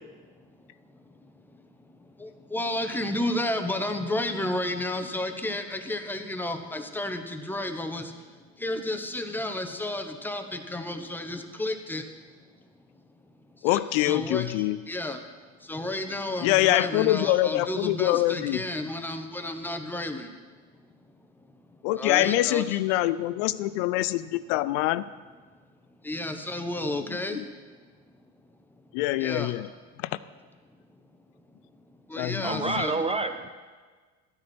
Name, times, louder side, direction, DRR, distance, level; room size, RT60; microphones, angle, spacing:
voice 1, 1.2-12.1 13.6-15.3 15.6-20.4 22.0-22.8 26.0-27.5 29.2-29.7 32.1-32.9, left 1 dB, 5° left, 6 dB, 0.9 m, -32 dB
voice 2, 13.6-14.8 16.4-18.6 21.8-25.1 27.3-27.5 28.9-29.7 32.2-32.8, left 16 dB, 75° left, 15 dB, 0.5 m, -25 dB
voice 3, 32.2-33.5, right 3 dB, 15° right, 8 dB, 0.5 m, -29 dB
13.0 x 9.7 x 4.4 m, 1.4 s
supercardioid pair, 110°, 38 cm